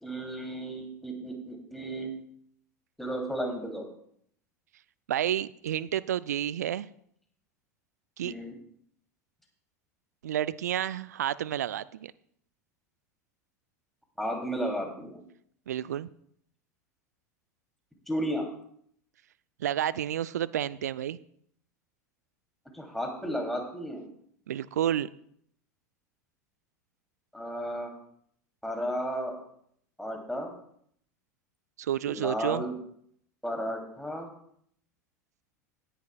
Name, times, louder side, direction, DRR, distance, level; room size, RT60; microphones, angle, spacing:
voice 1, 0.0-2.1 3.0-3.9 8.2-8.6 14.2-15.2 18.1-18.5 22.7-24.1 27.3-27.9 28.6-29.4 30.0-30.5 32.0-32.7 33.4-34.3, equal, ahead, 1 dB, 2.8 m, -33 dB
voice 2, 5.1-6.9 8.2-8.3 10.2-12.1 15.7-16.1 19.6-21.2 24.5-25.1 31.8-32.6, right 11 dB, 70° right, 19 dB, 0.4 m, -30 dB
17.5 x 10.0 x 2.3 m, 0.68 s
figure-of-eight pair, 80°, 9 cm